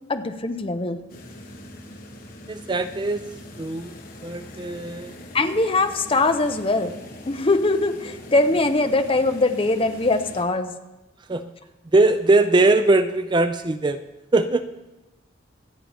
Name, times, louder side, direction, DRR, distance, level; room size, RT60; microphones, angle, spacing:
voice 1, 0.1-1.0 5.3-7.0 7.3-10.7, left 2 dB, 30° left, 7 dB, 0.8 m, -22 dB
sound 1, 1.1-10.4, left 1 dB, 50° left, 1.6 m, -42 dB
voice 2, 2.5-3.3 3.6-3.9 4.2-5.1 11.3-11.5 11.9-14.0 14.3-14.7, right 2 dB, 25° right, 10 dB, 0.4 m, -20 dB
25.5 x 8.7 x 3.5 m, 1.0 s
head